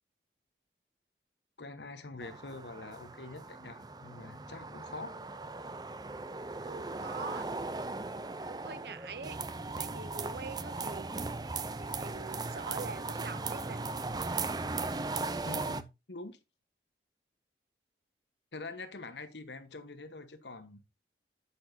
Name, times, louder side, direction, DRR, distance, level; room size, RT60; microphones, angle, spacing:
voice 1, 1.6-5.1 15.4-16.4 18.5-20.8, left 3 dB, 85° left, 1.3 m, -45 dB
sound 1, 2.2-15.8, right 3 dB, 25° right, 0.5 m, -38 dB
voice 2, 6.6-7.5 8.5-9.4 9.8-11.1 11.4-13.9, right 4 dB, 65° right, 0.7 m, -44 dB
9.6 x 8.5 x 2.8 m
head